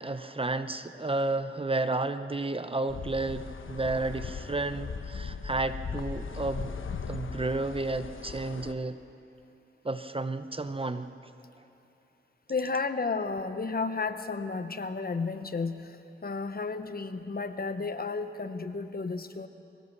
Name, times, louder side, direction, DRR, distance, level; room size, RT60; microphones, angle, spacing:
voice 1, 0.0-6.7 7.1-9.0 9.8-11.1, right 2 dB, 25° right, 11 dB, 0.7 m, -32 dB
sound 1, 2.9-8.7, left 5 dB, 75° left, 1.0 m, -38 dB
voice 2, 12.5-19.5, left 4 dB, 45° left, 10 dB, 1.0 m, -32 dB
23.5 x 18.0 x 6.7 m, 2.8 s
wide cardioid pair, 70°, 21 cm